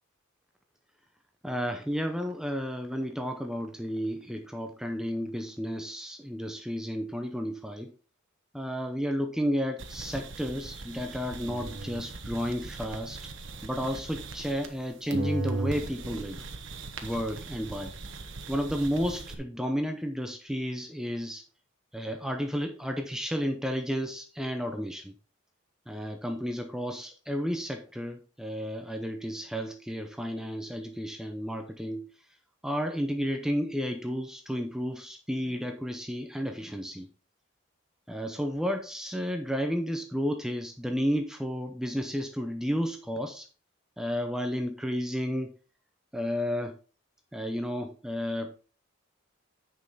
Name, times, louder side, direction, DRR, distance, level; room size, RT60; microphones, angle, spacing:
voice 1, 1.4-7.9 8.5-13.2 13.6-16.4 17.0-17.9 18.5-21.4 21.9-25.1 25.9-32.1 32.6-37.1 38.1-43.5 44.0-45.5 46.1-46.8 47.3-48.5, equal, 5° right, 5 dB, 0.6 m, -32 dB
sound 1, 9.8-14.8 15.1-19.3, right 3 dB, 65° right, 1.2 m, -38 dB
9.6 x 5.5 x 4.1 m, 0.36 s
head